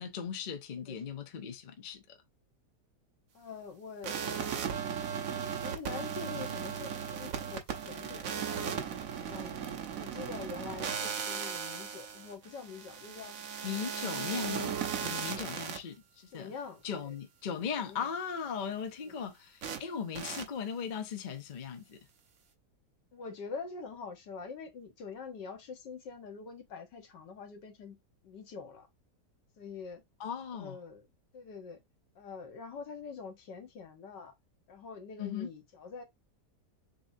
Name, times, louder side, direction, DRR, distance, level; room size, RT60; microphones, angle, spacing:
voice 1, 0.0-2.2 6.3-6.5 13.6-16.5 16.8-22.0 30.2-30.8 35.2-35.5, left 7 dB, 50° left, 0.6 m, -38 dB
voice 2, 3.3-4.2 5.6-8.8 9.2-13.4 14.0-14.3 16.3-17.1 17.8-18.1 18.8-19.2 20.3-20.4 23.1-28.0 28.2-28.9 29.6-30.0 30.5-31.0 31.3-31.8 32.2-34.3 34.7-36.0, left 5 dB, 85° left, 1.9 m, -45 dB
sound 1, 4.0-15.8 19.6-19.8 20.1-20.4, right 7 dB, 60° right, 1.2 m, -37 dB
6.8 x 2.9 x 2.7 m
omnidirectional pair, 1.8 m